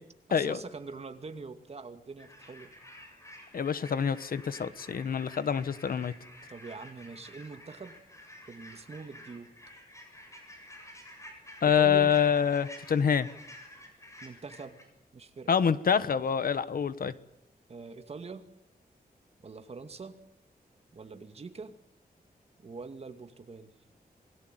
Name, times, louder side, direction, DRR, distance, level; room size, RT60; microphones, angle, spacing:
voice 1, 0.3-2.7 6.5-8.0 8.5-9.5 11.6-12.1 14.2-14.8 15.1-15.5 17.7-18.4 19.4-20.2 20.9-21.7 22.6-23.7, right 4 dB, 40° right, 8 dB, 2.4 m, -43 dB
sound 1, 2.2-14.8, left 1 dB, 20° left, 7.4 m, -51 dB
voice 2, 3.5-6.1 11.6-13.3 15.5-17.1, left 7 dB, 65° left, 14 dB, 1.3 m, -26 dB
27.5 x 22.0 x 9.4 m, 0.78 s
wide cardioid pair, 175°, 16 cm